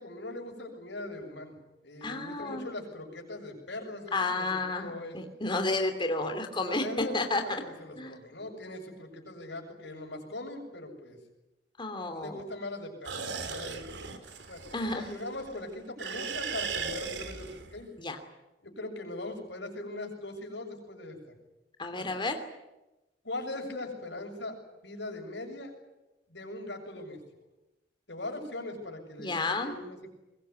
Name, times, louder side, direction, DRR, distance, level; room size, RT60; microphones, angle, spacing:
voice 1, 0.0-1.6 1.8-4.5 4.8-5.2 6.6-7.2 7.4-11.2 12.0-14.1 14.5-14.6 15.0-17.9 18.6-21.2 21.9-22.1 23.2-25.7 26.3-27.2 28.1-30.1, left 2 dB, 75° left, 3 dB, 7.2 m, -40 dB
voice 2, 2.0-2.7 4.1-7.4 8.0-8.2 11.8-12.4 14.7-15.1 18.0-18.2 21.8-22.4 29.2-29.8, left 2 dB, 25° left, 6 dB, 2.9 m, -31 dB
sound 1, 13.0-15.6 16.0-17.8, right 5 dB, 70° right, 3.0 m, -37 dB
23.5 x 21.5 x 9.7 m, 0.99 s
head